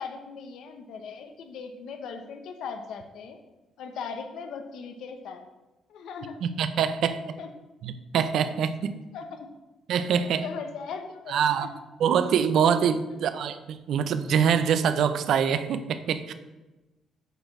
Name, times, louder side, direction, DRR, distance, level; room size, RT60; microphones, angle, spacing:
voice 1, 0.0-3.4 3.8-5.4 5.9-6.4 7.4-7.5 9.1-9.5 10.4-11.7, left 5 dB, 70° left, 6 dB, 0.9 m, -38 dB
voice 2, 6.4-7.2 7.8-8.9 9.9-10.4 11.3-11.7 12.0-16.3, right 7 dB, 60° right, 11 dB, 0.6 m, -24 dB
8.1 x 4.5 x 5.9 m, 1.1 s
cardioid pair, 175°, 0 cm